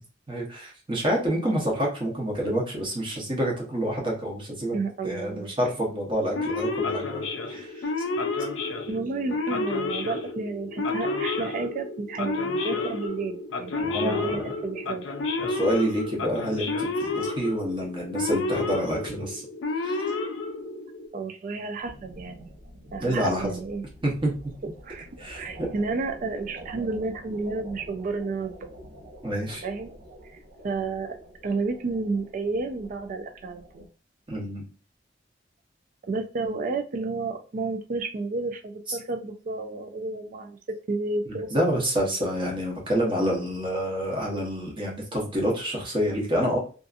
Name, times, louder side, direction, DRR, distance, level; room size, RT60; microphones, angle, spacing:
voice 1, 0.3-4.8 5.0-7.9 13.8-14.3 15.4-19.4 19.8-20.2 23.0-23.5 24.0-24.3 25.2-25.7 29.2-29.6 34.3-34.6 38.9-39.0 41.3-46.6, equal, 25° right, -1 dB, 0.9 m, -28 dB
voice 2, 4.7-5.5 8.9-15.1 21.1-22.5 22.9-23.8 24.8-25.1 25.3-28.7 29.6-29.9 30.6-31.2 31.4-33.9 36.1-40.6 40.9-41.5, right 3 dB, 45° right, 5 dB, 0.4 m, -31 dB
Male speech man speaking / Siren, 6.3-21.1, left 3 dB, 80° left, 0.4 m, -30 dB
sound 1, 21.8-33.9, equal, 85° right, 1.3 m, -47 dB
2.6 x 2.5 x 2.4 m, 0.39 s
head